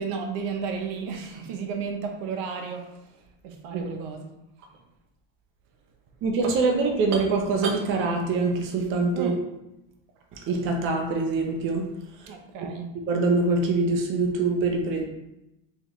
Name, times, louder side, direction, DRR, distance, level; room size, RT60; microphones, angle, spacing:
voice 1, 0.0-3.0 3.4-4.3 9.1-9.4 12.3-12.9, right 6 dB, 65° right, 4 dB, 0.7 m, -33 dB
voice 2, 6.2-9.3 10.3-11.9 12.2-12.3 13.1-15.0, right 3 dB, 35° right, 1 dB, 0.5 m, -24 dB
4.0 x 2.9 x 3.0 m, 0.91 s
cardioid pair, 150°, 37 cm